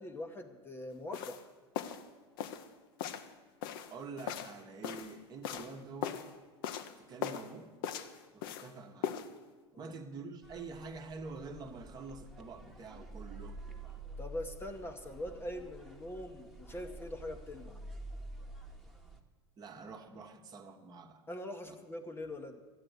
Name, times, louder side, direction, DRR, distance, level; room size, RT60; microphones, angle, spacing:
voice 1, 0.0-1.5 9.7-9.9 14.2-17.8 21.3-22.6, left 1 dB, 15° left, 6 dB, 1.0 m, -43 dB
sound 1, 1.1-1.4 1.8-2.1 2.4-2.7 3.0-3.3 3.6-5.1 5.4-5.7 6.0-6.3 6.6-6.9 7.2-7.5 7.8-8.7 9.0-9.3, left 9 dB, 55° left, 0.8 m, -39 dB
voice 2, 3.9-6.2 7.0-7.7 8.3-9.2 9.7-13.6 19.6-21.2 21.7-21.8, right 4 dB, 30° right, 5 dB, 1.2 m, -47 dB
sound 2, 10.4-19.2, right 2 dB, ahead, 1.3 m, -49 dB
13.0 x 8.9 x 8.1 m, 1.3 s
figure-of-eight pair, 80°, 14 cm